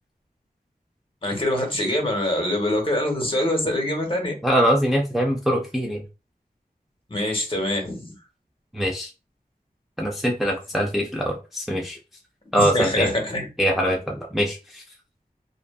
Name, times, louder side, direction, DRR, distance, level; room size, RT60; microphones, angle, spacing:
voice 1, 1.2-4.3 7.1-8.1 12.6-13.5, left 1 dB, 35° left, 2 dB, 1.0 m, -24 dB
voice 2, 4.4-6.0 8.7-9.1 10.0-12.0 12.5-13.1 13.6-14.8, equal, ahead, -1 dB, 0.5 m, -23 dB
2.6 x 2.4 x 2.3 m, 0.30 s
wide cardioid pair, 55°, 16 cm